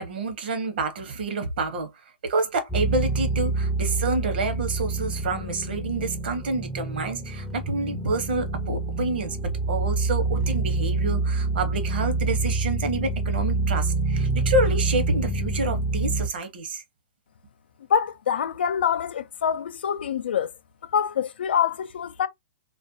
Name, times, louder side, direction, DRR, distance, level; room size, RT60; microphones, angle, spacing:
voice 1, 0.0-16.8, right 3 dB, 70° right, 0.9 m, -28 dB
sound 1, 2.7-16.3, right 3 dB, 5° left, 0.4 m, -27 dB
voice 2, 17.9-20.5 20.9-22.3, left 8 dB, 85° left, 0.4 m, -25 dB
2.4 x 2.1 x 2.6 m
hypercardioid pair, 160°, 6 cm